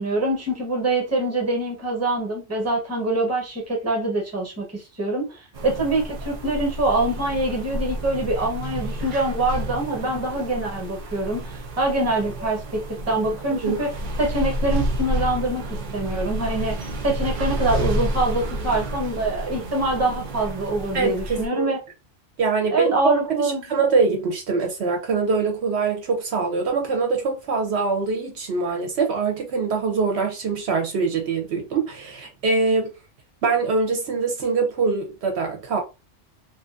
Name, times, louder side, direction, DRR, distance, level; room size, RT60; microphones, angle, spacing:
voice 1, 0.0-12.8 13.1-13.9 14.2-15.6 15.9-21.8 22.7-23.6, right 2 dB, 15° right, 0.8 m, -24 dB
sound 1, 5.5-21.5, right 1 dB, 55° right, 0.6 m, -30 dB
voice 2, 20.9-21.7 22.4-32.9 33.4-35.8, right 4 dB, 70° right, 0.9 m, -23 dB
2.8 x 2.5 x 2.4 m
omnidirectional pair, 1.2 m